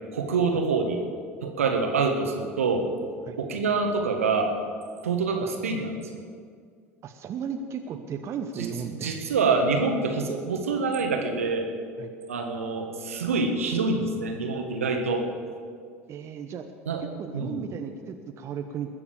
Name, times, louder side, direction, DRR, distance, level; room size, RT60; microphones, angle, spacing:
voice 1, 0.1-1.0 1.4-2.8 3.4-4.5 5.0-6.0 9.0-11.7 12.3-15.2 16.9-17.0 17.3-17.6, right 4 dB, 75° right, 3 dB, 1.6 m, -26 dB
voice 2, 7.0-9.2 12.0-12.1 16.1-16.7 17.0-19.0, right 7 dB, 40° right, 5 dB, 0.9 m, -35 dB
20.5 x 7.1 x 7.0 m, 2.1 s
figure-of-eight pair, 70°, 7 cm